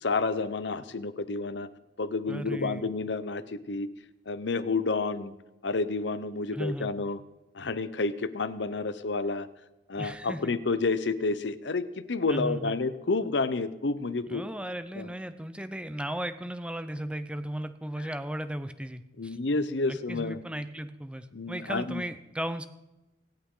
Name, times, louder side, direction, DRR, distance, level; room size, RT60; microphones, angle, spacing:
voice 1, 0.0-1.7 2.0-3.9 4.3-5.3 5.6-7.2 7.5-9.5 9.9-14.4 15.0-15.1 19.2-20.4 21.3-22.0, left 3 dB, 70° left, 13 dB, 0.8 m, -30 dB
voice 2, 2.3-2.9 6.5-6.9 10.0-10.5 12.3-12.8 14.3-19.4 19.9-22.7, right 1 dB, 5° right, 11 dB, 0.6 m, -36 dB
24.5 x 8.8 x 3.8 m, 0.98 s
head